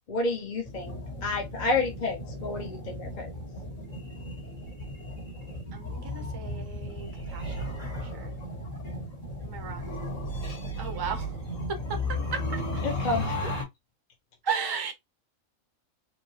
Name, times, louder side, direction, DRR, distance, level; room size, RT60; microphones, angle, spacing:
voice 1, 0.1-3.3 12.8-13.5, left 3 dB, 40° left, 0.8 m, -30 dB
sound 1, 0.6-13.6, left 1 dB, 65° left, 2.3 m, -35 dB
voice 2, 5.7-8.3 9.4-10.0 10.8-11.4 11.7-12.0 12.3-12.8 14.4-14.9, right 6 dB, 25° right, 0.5 m, -35 dB
4.5 x 2.0 x 2.8 m
omnidirectional pair, 1.5 m